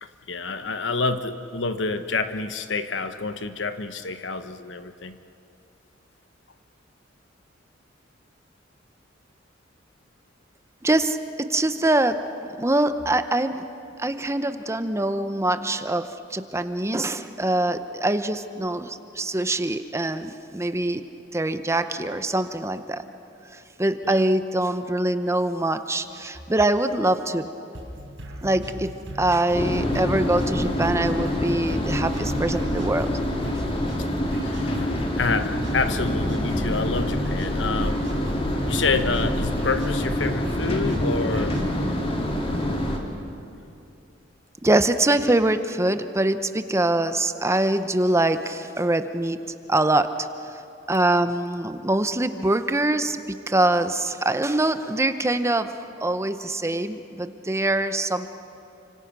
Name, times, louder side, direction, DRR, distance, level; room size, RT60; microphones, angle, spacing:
voice 1, 0.0-5.2 24.0-24.2 34.0-38.0 38.6-41.6, left 4 dB, 70° left, 9 dB, 1.2 m, -28 dB
voice 2, 10.8-13.6 14.0-21.0 21.3-23.0 23.8-27.5 28.4-33.1 44.6-49.4 49.7-50.1 50.9-55.7 56.0-58.3, right 1 dB, 15° right, 10 dB, 0.8 m, -24 dB
sound 1, 27.7-41.8, equal, 70° right, 4.2 m, -38 dB
sound 2, 29.5-43.0, left 1 dB, 30° left, 2.7 m, -26 dB
30.0 x 25.5 x 6.1 m, 2.7 s
head